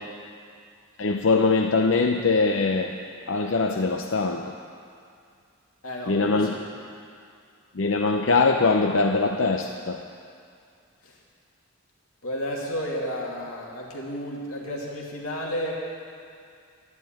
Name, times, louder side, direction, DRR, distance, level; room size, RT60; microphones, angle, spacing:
voice 1, 1.0-3.0 3.3-4.5 6.1-6.5 7.8-10.0, left 3 dB, 65° left, 3 dB, 0.7 m, -22 dB
voice 2, 5.8-6.6 11.0-11.1 12.2-15.7, equal, 80° left, -3 dB, 2.5 m, -32 dB
12.5 x 11.0 x 9.1 m, 2.3 s
head